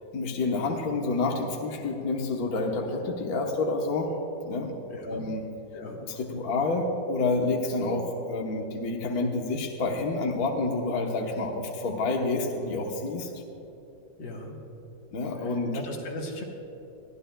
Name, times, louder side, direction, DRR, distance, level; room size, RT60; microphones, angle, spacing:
voice 1, 0.1-4.1 4.4-4.7 5.0-5.5 6.1-13.3 15.1-15.8, left 3 dB, 55° left, 0 dB, 1.5 m, -28 dB
voice 2, 4.9-5.2 5.7-6.0 8.0-8.1 14.2-14.6 15.4-16.4, left 2 dB, 80° left, 0 dB, 2.2 m, -38 dB
22.5 x 14.5 x 2.3 m, 2.9 s
omnidirectional pair, 2.0 m